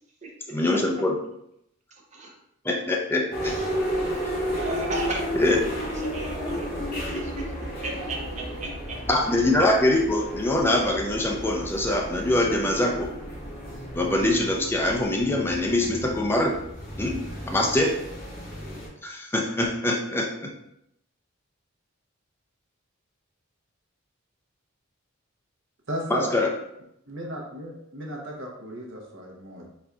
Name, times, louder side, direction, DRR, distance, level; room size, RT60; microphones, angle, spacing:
voice 1, 0.5-1.2 2.6-3.6 5.3-5.7 9.1-13.1 14.0-16.6 17.0-18.0 19.0-20.5 26.1-26.5, left 1 dB, 10° left, 0 dB, 0.4 m, -24 dB
sound 1, 3.3-18.9, equal, 45° left, 1.3 m, -33 dB
voice 2, 3.4-3.8 4.5-5.3 5.8-9.0, right 2 dB, 35° right, -1 dB, 0.8 m, -35 dB
voice 3, 25.9-26.3 27.1-29.7, equal, 60° right, -1 dB, 0.9 m, -35 dB
4.2 x 3.9 x 2.4 m, 0.78 s
head